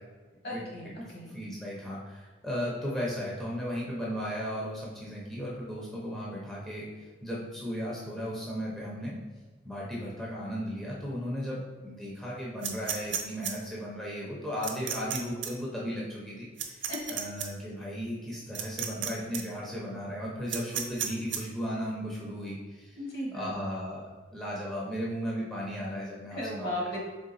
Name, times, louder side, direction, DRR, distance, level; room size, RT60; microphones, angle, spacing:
voice 1, 0.4-1.4 16.9-17.2 23.0-23.6 26.3-27.0, left 1 dB, 55° left, -2 dB, 1.2 m, -36 dB
voice 2, 1.3-6.9 7.2-9.2 9.6-23.0 23.3-26.7, equal, 5° left, -6 dB, 0.6 m, -36 dB
sound 1, 12.6-13.5 14.6-15.2 15.4-15.5 16.6-17.5 18.5-19.1 19.3-19.4 20.5-21.4, right 9 dB, 75° right, 0.6 m, -32 dB
3.7 x 3.5 x 4.0 m, 1.3 s
head